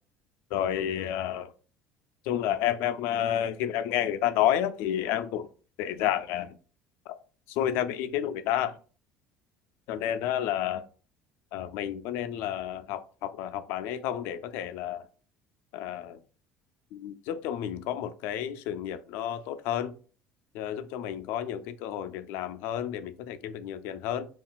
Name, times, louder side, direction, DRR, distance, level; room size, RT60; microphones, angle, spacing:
voice 1, 0.5-1.5 2.3-5.5 5.8-6.5 7.6-8.7 9.9-10.8 11.5-15.0 15.7-16.2 16.9-19.9 20.5-24.3, left 11 dB, 75° left, 0.3 m, -30 dB
2.4 x 2.3 x 3.7 m
cardioid pair, 135°, 4 cm